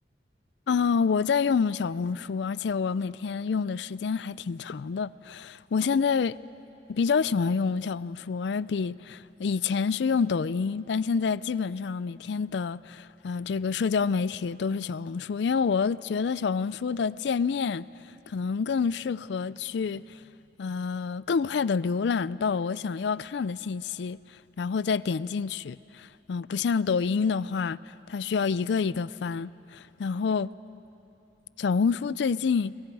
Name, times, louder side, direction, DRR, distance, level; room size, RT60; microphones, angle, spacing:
voice 1, 0.7-6.4 6.9-17.9 18.3-20.0 20.6-24.2 24.6-27.8 28.1-30.5 31.6-32.7, left 5 dB, 70° left, 0.4 m, -27 dB
29.0 x 22.5 x 4.8 m
head